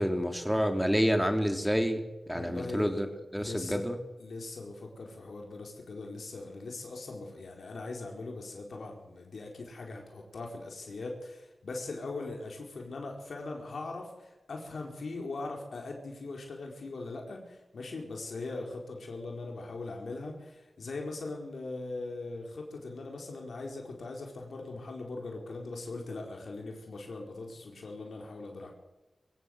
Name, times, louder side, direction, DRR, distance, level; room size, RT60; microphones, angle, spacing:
voice 1, 0.0-3.1 3.3-4.0, equal, ahead, 6 dB, 3.4 m, -28 dB
voice 2, 2.3-3.1 3.4-3.9 4.2-28.7, left 3 dB, 75° left, 1 dB, 4.6 m, -40 dB
23.5 x 16.5 x 8.0 m, 1.1 s
wide cardioid pair, 75°, 0 cm